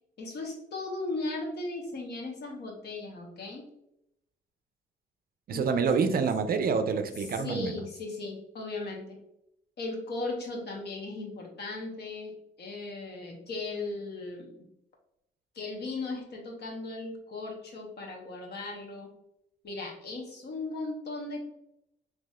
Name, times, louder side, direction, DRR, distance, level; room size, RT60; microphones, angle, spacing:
voice 1, 0.2-3.7 5.5-6.2 7.3-9.2 9.8-12.3 12.6-14.6 15.5-19.1 19.6-21.4, left 2 dB, 55° left, 0 dB, 1.0 m, -37 dB
voice 2, 5.5-7.8, right 5 dB, 50° right, 8 dB, 0.4 m, -27 dB
4.0 x 2.8 x 2.3 m, 0.82 s
cardioid pair, 90°, 20 cm